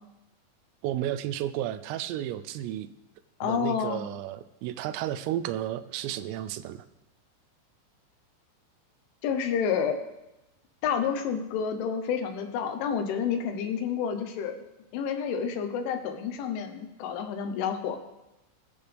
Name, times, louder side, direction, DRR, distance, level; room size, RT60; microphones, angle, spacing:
voice 1, 0.8-2.9 3.4-6.8, right 12 dB, 85° right, 12 dB, 3.3 m, -32 dB
voice 2, 3.4-4.0 9.2-10.0 10.8-14.6 14.9-18.0, left 7 dB, 75° left, 6 dB, 3.2 m, -29 dB
22.5 x 9.9 x 3.5 m, 0.94 s
omnidirectional pair, 6.0 m